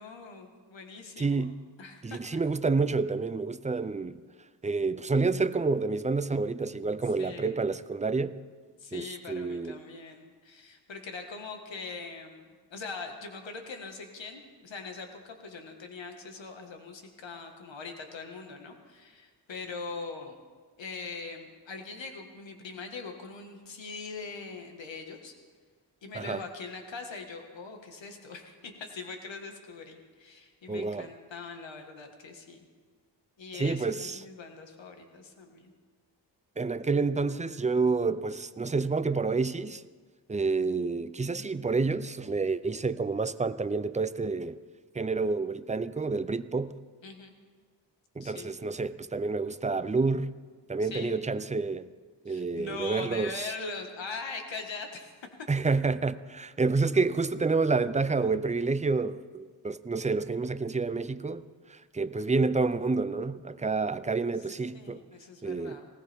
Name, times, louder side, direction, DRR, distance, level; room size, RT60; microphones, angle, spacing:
voice 1, 0.0-1.5 1.8-2.2 7.2-7.6 8.8-20.4 20.8-25.3 26.0-32.6 33.4-35.7 47.0-47.3 48.2-48.5 50.8-51.2 52.3-55.1 64.7-65.9, left 4 dB, 85° left, 1.8 m, -42 dB
voice 2, 1.2-1.6 2.0-4.2 4.6-8.4 8.9-9.8 26.1-26.4 30.7-31.1 33.5-34.2 36.6-39.8 40.3-44.6 44.9-46.7 48.2-50.3 50.7-51.9 52.3-53.5 55.5-61.4 61.7-65.0 65.4-65.8, right 4 dB, 15° right, 0.5 m, -29 dB
19.5 x 17.0 x 3.6 m
wide cardioid pair, 90°, 44 cm